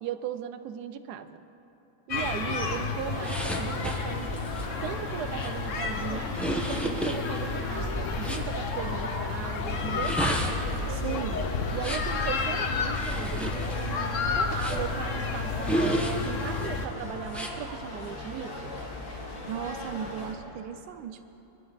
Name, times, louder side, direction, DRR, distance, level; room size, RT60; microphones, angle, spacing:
voice 1, 0.0-1.4 2.1-4.4 4.8-10.2 11.7-18.7, right 9 dB, 70° right, 10 dB, 1.0 m, -37 dB
sound 1, 2.1-16.9, left 4 dB, 50° left, 1.0 m, -31 dB
sound 2, 3.1-20.4, left 2 dB, 70° left, 2.6 m, -38 dB
sound 3, 3.2-8.5 9.8-12.2 12.9-15.0 15.6-16.7 17.3-17.5, right 1 dB, ahead, 0.6 m, -33 dB
voice 2, 10.9-11.5 19.5-21.2, right 9 dB, 85° right, 6 dB, 1.5 m, -36 dB
22.5 x 12.5 x 4.0 m, 2.9 s
omnidirectional pair, 2.1 m